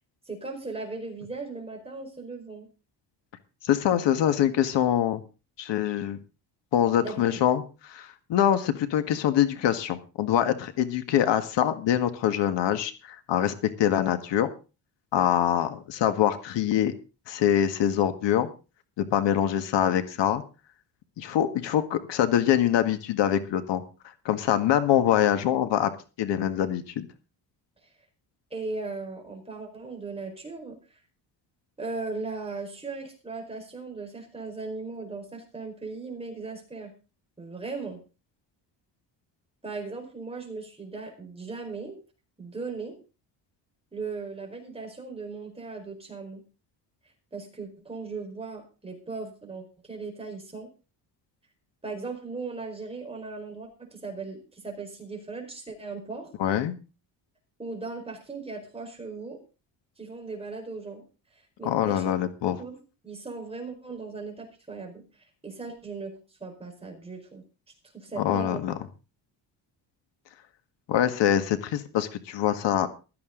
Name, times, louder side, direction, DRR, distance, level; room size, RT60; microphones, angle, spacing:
voice 1, 0.3-2.7 7.0-7.4 28.5-31.0 31.8-36.9 37.4-38.0 39.6-42.0 42.4-43.0 43.9-46.4 47.3-50.7 51.8-56.3 57.6-59.4 60.0-61.0 61.3-62.2 62.6-62.8 63.0-65.0 65.4-66.1 66.4-67.4 67.9-68.6, right 3 dB, 15° right, 2 dB, 4.7 m, -38 dB
voice 2, 3.6-5.2 5.6-6.2 6.7-14.5 15.1-16.9 17.3-18.5 19.0-20.4 21.2-23.8 24.3-25.9 26.2-27.1 56.4-56.7 61.6-62.6 68.2-68.8 70.9-72.9, left 10 dB, 80° left, 9 dB, 1.8 m, -24 dB
15.5 x 13.5 x 3.9 m, 0.33 s
cardioid pair, 150°, 42 cm